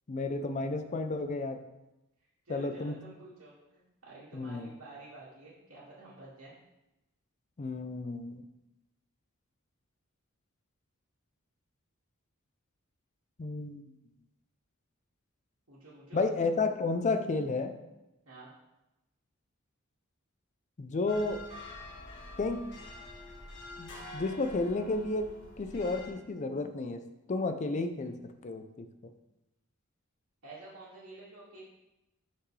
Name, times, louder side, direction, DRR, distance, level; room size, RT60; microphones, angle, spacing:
voice 1, 0.1-1.6 2.5-3.0 4.3-4.7 7.6-8.4 13.4-13.8 16.1-17.8 20.8-21.4 22.4-22.7 23.8-25.3 25.6-27.0 27.3-28.2 28.4-28.9, left 3 dB, 35° left, 8 dB, 0.4 m, -32 dB
voice 2, 2.4-6.6 15.7-16.3 18.3-18.5 30.4-31.6, right 2 dB, 80° right, -10 dB, 1.8 m, -50 dB
sound 1, 21.1-26.1, left 1 dB, 55° left, 1.6 m, -46 dB
5.9 x 5.7 x 3.2 m, 0.94 s
head